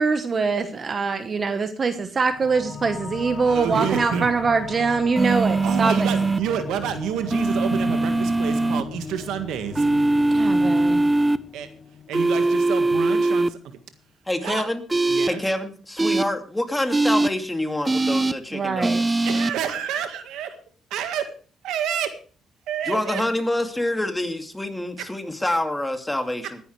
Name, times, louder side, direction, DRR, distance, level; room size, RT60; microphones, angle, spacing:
voice 1, 0.0-6.1 10.3-11.1 18.5-19.0, right 4 dB, 40° right, 9 dB, 1.2 m, -23 dB
sound 1, 2.2-13.2, left 5 dB, 35° left, 1.5 m, -37 dB
voice 2, 3.4-4.3 5.2-9.9 11.5-11.7 12.1-13.6 14.4-14.6 15.1-15.4 19.2-20.6 20.9-21.3 21.6-22.2 22.7-23.2 25.0-25.1, right 8 dB, 85° right, 8 dB, 1.7 m, -28 dB
sound 2, 5.2-6.4 7.3-8.8 9.8-11.4 12.1-13.5 14.9-15.3 16.0-16.2 16.9-17.3 17.9-18.3 18.8-19.5, right 2 dB, 15° right, 0.7 m, -21 dB
voice 3, 14.3-14.8 15.3-19.2 22.9-26.6, left 1 dB, 10° left, 5 dB, 2.3 m, -27 dB
20.5 x 10.5 x 3.3 m, 0.40 s
cardioid pair, 90°, 0 cm